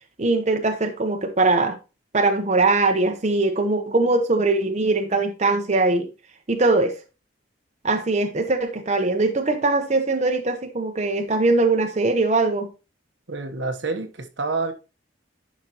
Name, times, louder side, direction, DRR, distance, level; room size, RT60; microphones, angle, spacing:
voice 1, 0.2-1.8 2.1-6.1 6.5-7.0 7.8-12.7, right 3 dB, 35° right, 0.8 m, -21 dB
voice 2, 13.3-14.7, right 3 dB, 75° right, 1.1 m, -28 dB
11.0 x 5.1 x 2.9 m
head